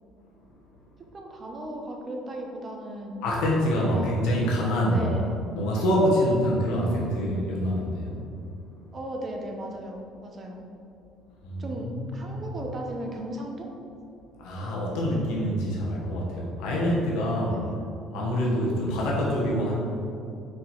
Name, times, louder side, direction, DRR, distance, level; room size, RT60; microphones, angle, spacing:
voice 1, 1.1-3.2 3.9-4.1 4.9-5.3 8.9-10.6 11.6-13.7 17.4-17.8, right 1 dB, 25° right, 1 dB, 0.8 m, -36 dB
voice 2, 3.2-5.1 5.5-8.2 11.4-12.4 14.4-17.6 18.1-19.7, equal, 90° left, -4 dB, 1.3 m, -26 dB
5.0 x 4.6 x 4.4 m, 2.6 s
cardioid pair, 160°, 0 cm